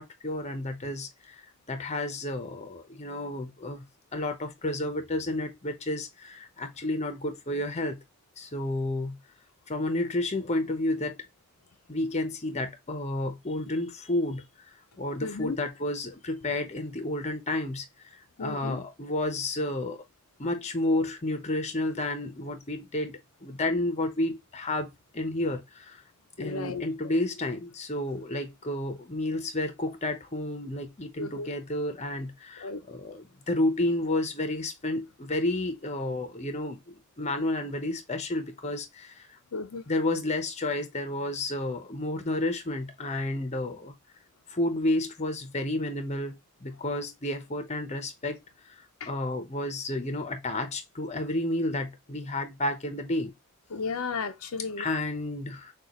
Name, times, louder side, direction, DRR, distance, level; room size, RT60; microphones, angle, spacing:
voice 1, 0.0-1.4 1.7-3.8 4.1-8.0 8.4-9.2 9.7-11.2 11.9-14.4 15.0-17.9 18.4-20.0 20.4-24.9 25.1-26.0 26.4-39.2 39.9-43.9 44.5-46.3 46.6-48.4 49.0-53.3 54.8-55.7, left 1 dB, 30° left, 0.8 m, -31 dB
voice 2, 15.2-15.6 18.4-18.8 26.4-26.8 31.2-31.5 32.6-32.8 39.5-39.8 49.0-49.1 53.7-54.9, left 4 dB, 75° left, 0.6 m, -34 dB
6.3 x 2.5 x 3.0 m
head